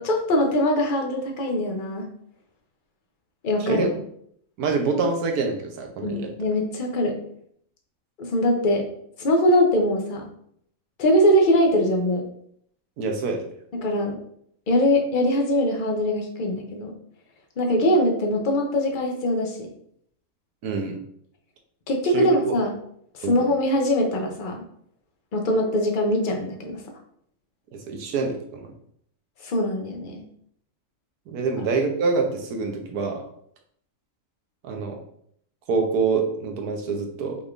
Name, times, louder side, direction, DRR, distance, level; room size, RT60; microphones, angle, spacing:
voice 1, 0.0-2.1 3.4-4.0 6.0-7.2 8.2-8.8 9.2-10.3 11.0-12.2 13.7-14.2 14.7-16.9 17.6-19.7 21.9-22.7 23.1-24.6 25.3-26.8 29.4-30.2 31.6-31.7, left 1 dB, 45° left, 2 dB, 0.7 m, -22 dB
voice 2, 4.6-6.3 13.0-13.5 20.6-21.0 22.1-22.5 23.2-23.4 27.7-28.7 31.3-33.2 34.6-35.0 35.7-37.4, right 4 dB, 85° right, 3 dB, 1.3 m, -26 dB
5.5 x 3.4 x 2.5 m, 0.67 s
omnidirectional pair, 1.6 m